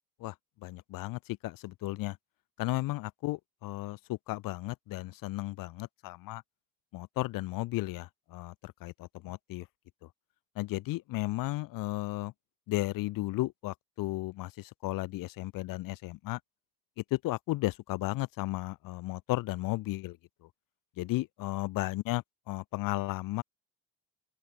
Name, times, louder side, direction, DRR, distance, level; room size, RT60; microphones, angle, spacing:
voice 1, 0.6-2.2 2.6-6.4 6.9-9.6 10.6-12.3 12.7-16.4 17.1-20.2 21.0-23.4, left 18 dB, 60° left, 0.5 m, -34 dB
open air
cardioid pair, 90°, 40 cm